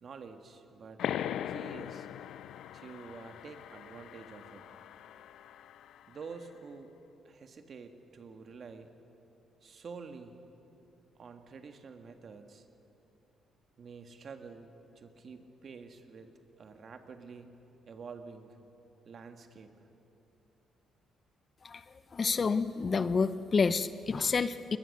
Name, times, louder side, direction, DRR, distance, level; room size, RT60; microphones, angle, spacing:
voice 1, 0.0-2.1 2.7-4.6 6.1-6.9 7.2-8.9 9.6-10.4 11.1-12.7 13.8-14.7 14.9-16.3 16.6-17.5 17.9-18.6 19.0-19.8, right 5 dB, 50° right, 6 dB, 1.7 m, -48 dB
sound 1, 1.0-6.2, left 10 dB, 75° left, 0.4 m, -40 dB
voice 2, 22.1-24.8, left 5 dB, 40° left, 14 dB, 0.7 m, -29 dB
21.5 x 20.0 x 6.7 m, 2.9 s
cardioid pair, 90°, 0 cm